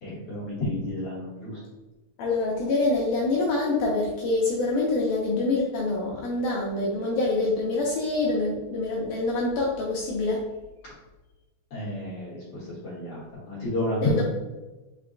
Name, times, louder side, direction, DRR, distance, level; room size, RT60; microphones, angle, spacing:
voice 1, 0.0-1.6 11.7-14.2, left 1 dB, 60° left, -9 dB, 1.5 m, -30 dB
voice 2, 2.2-10.5 14.0-14.2, left 2 dB, 85° left, -3 dB, 1.8 m, -26 dB
5.8 x 2.2 x 3.7 m, 1.1 s
omnidirectional pair, 4.4 m